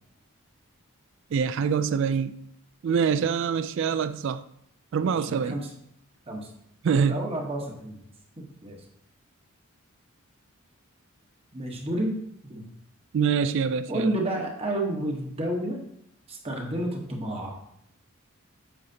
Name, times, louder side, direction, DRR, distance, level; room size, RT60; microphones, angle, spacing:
voice 1, 1.3-2.4 2.8-4.4 4.9-5.6 6.8-7.2 13.1-14.1, right 6 dB, 60° right, 0.3 m, -25 dB
voice 2, 5.0-5.7 6.3-6.5 6.9-8.0 8.4-8.8 11.5-12.7 13.9-15.8 16.3-17.6, right 1 dB, 25° right, 1.2 m, -31 dB
8.8 x 6.4 x 2.8 m
head